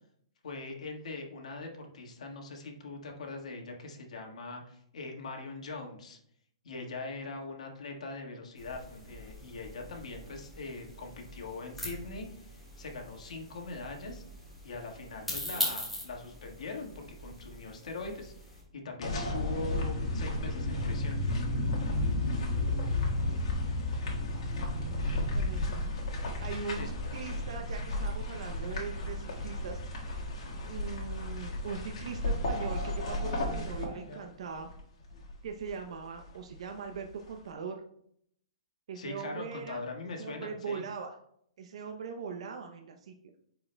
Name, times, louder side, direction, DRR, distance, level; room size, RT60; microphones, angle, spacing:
voice 1, 0.4-6.2 6.6-14.2 14.6-21.2 26.8-26.9 38.9-40.8, left 3 dB, 75° left, 1 dB, 1.5 m, -42 dB
sound 1, 8.6-18.6, equal, ahead, 1.6 m, -42 dB
sound 2, 19.0-34.2 34.6-34.8 35.1-35.8 36.2-36.3, left 1 dB, 60° left, 1.6 m, -33 dB
voice 2, 23.2-23.8 25.3-25.7 26.4-29.8 30.7-34.7 35.4-37.8 38.9-39.8 40.2-41.1 41.6-43.1, right 5 dB, 60° right, 4 dB, 0.6 m, -40 dB
9.7 x 4.6 x 2.2 m, 0.70 s
hypercardioid pair, 170°, 4 cm